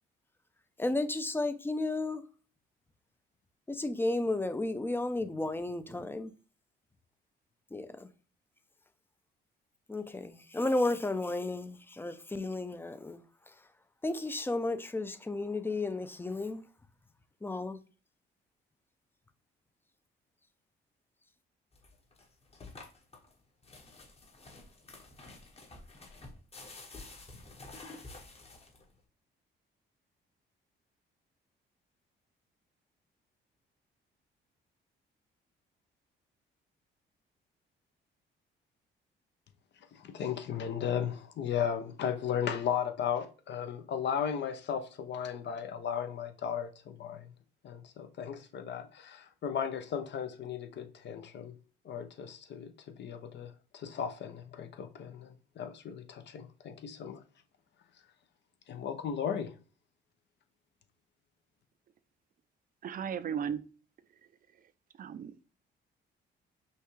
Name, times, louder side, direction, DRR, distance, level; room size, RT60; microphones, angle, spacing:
voice 1, 0.8-2.3 3.7-6.3 7.7-8.1 9.9-13.7 14.0-16.7 17.4-17.8, left 2 dB, 10° left, 0.5 m, -33 dB
sound 1, 21.7-29.0, left 2 dB, 30° left, 1.1 m, -50 dB
voice 2, 39.9-47.3 47.6-51.5 51.8-52.7 53.0-57.2 58.7-59.5, left 8 dB, 60° left, 0.8 m, -35 dB
voice 3, 62.8-63.6 65.0-65.4, right 8 dB, 45° right, 0.5 m, -35 dB
5.5 x 2.3 x 3.2 m
cardioid pair, 90°, 20 cm